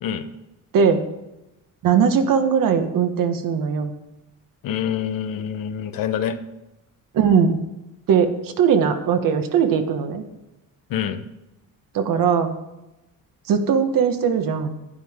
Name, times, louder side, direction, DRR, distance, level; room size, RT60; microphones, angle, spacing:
voice 1, 1.8-3.9 7.1-7.6 8.1-10.2 11.9-12.5 13.5-14.8, right 7 dB, 70° right, 7 dB, 1.4 m, -19 dB
voice 2, 4.6-6.4 10.9-11.2, left 9 dB, 75° left, 9 dB, 1.0 m, -26 dB
11.5 x 9.4 x 3.7 m, 0.94 s
cardioid pair, 90°, 34 cm